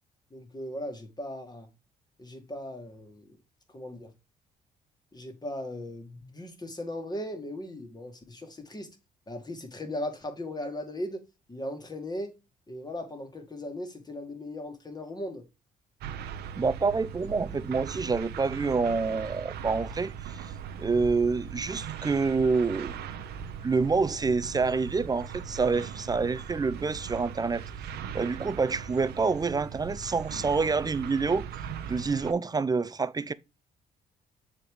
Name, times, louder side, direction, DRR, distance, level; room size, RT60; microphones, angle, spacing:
voice 1, 0.3-1.7 2.2-3.4 3.7-4.1 5.1-8.9 9.3-11.2 11.5-12.3 12.7-15.5, left 1 dB, 25° left, 2.1 m, -38 dB
sound 1, 16.0-32.3, right 7 dB, 70° right, 0.8 m, -39 dB
voice 2, 16.6-20.4 20.8-23.0 23.6-27.6 28.1-31.5 31.9-33.3, right 4 dB, 20° right, 0.5 m, -27 dB
6.9 x 3.7 x 4.8 m
hypercardioid pair, 55°, 17 cm